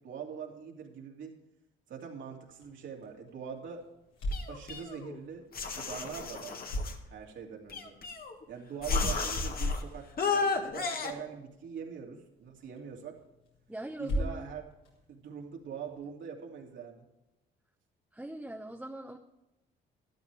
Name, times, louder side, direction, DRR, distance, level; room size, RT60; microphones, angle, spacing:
voice 1, 0.0-1.3 1.9-3.8 4.5-5.4 5.7-6.6 7.1-8.0 8.5-13.2 14.0-14.6 15.1-17.0, right 7 dB, 75° right, 0 dB, 2.7 m, -43 dB
sound 1, 2.4-16.0, equal, 90° left, 4.3 m, -43 dB
sound 2, 4.3-5.2 5.5-7.0 7.7-8.4 8.8-9.8 10.2-11.1, left 4 dB, 50° left, 1.8 m, -32 dB
voice 2, 13.7-14.5 18.1-19.2, right 1 dB, 5° right, 2 dB, 1.0 m, -41 dB
13.0 x 12.0 x 3.4 m, 0.97 s
cardioid pair, 90°, 20 cm